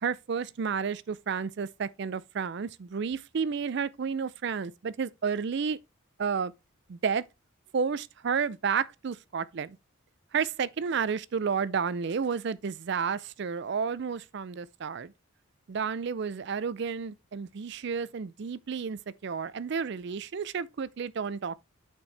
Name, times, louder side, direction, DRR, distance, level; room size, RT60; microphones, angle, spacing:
voice 1, 0.0-5.8 6.2-6.5 6.9-7.2 7.7-9.8 10.3-15.1 15.7-21.6, right 6 dB, 55° right, 0.4 m, -31 dB
8.6 x 4.5 x 3.3 m
head